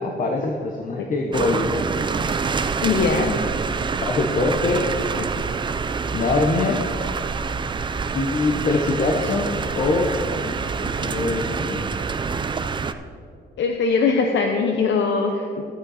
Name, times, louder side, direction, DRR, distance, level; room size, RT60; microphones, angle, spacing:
voice 1, 0.0-1.7 3.1-3.3 4.0-4.9 6.1-6.9 8.1-10.1 10.8-12.0, left 3 dB, 45° left, 1 dB, 0.9 m, -23 dB
sound 1, 1.3-12.9, right 5 dB, 25° right, 0.3 m, -26 dB
voice 2, 2.8-3.3 5.2-5.3 10.4-10.5 13.6-15.6, left 4 dB, 85° left, 3 dB, 0.7 m, -21 dB
13.0 x 8.1 x 4.2 m, 2.4 s
wide cardioid pair, 155°, 19 cm